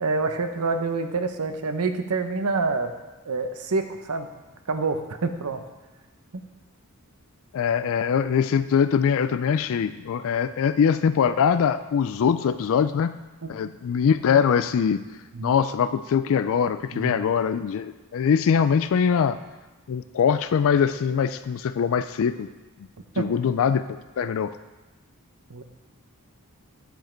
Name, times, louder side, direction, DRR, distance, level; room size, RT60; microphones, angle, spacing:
voice 1, 0.0-2.9 3.3-4.3 4.7-5.6 13.4-13.5 15.3-15.5 16.9-17.2 23.2-23.3 25.5-25.6, right 3 dB, 80° right, 7 dB, 0.8 m, -27 dB
voice 2, 7.5-13.1 13.5-15.1 15.4-19.4 19.9-22.5 23.2-24.5, left 7 dB, 65° left, 12 dB, 0.3 m, -22 dB
9.2 x 7.3 x 4.4 m, 1.1 s
head